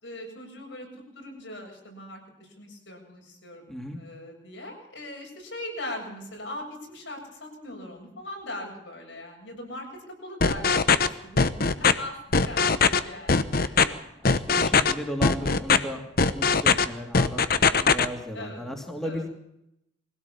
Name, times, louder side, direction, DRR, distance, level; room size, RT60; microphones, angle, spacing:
voice 1, 0.0-0.9 1.1-10.8 11.2-11.6 12.0-12.8 13.0-13.9 18.3-18.6 19.0-19.2, left 1 dB, 80° left, 0 dB, 7.8 m, -40 dB
voice 2, 3.7-4.0 14.2-16.0 16.3-19.3, equal, ahead, 1 dB, 2.6 m, -35 dB
sound 1, 10.4-11.1 11.4-11.9 12.3-13.0 13.3-13.8 14.3-14.9 15.2-15.8 16.2-16.9 17.1-18.1, left 5 dB, 50° left, 1.0 m, -20 dB
22.5 x 16.5 x 7.2 m, 0.82 s
head